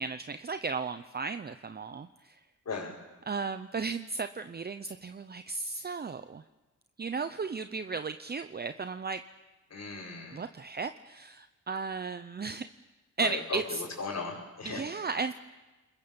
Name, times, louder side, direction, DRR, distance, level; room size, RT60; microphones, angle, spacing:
voice 1, 0.0-2.4 3.3-6.4 7.0-9.2 10.3-12.7 13.2-13.8 14.6-15.3, right 4 dB, 30° right, 10 dB, 0.8 m, -35 dB
voice 2, 9.7-10.4 13.2-14.8, left 4 dB, 60° left, -6 dB, 5.5 m, -37 dB
30.0 x 21.0 x 7.1 m, 1.1 s
cardioid pair, 95°, 31 cm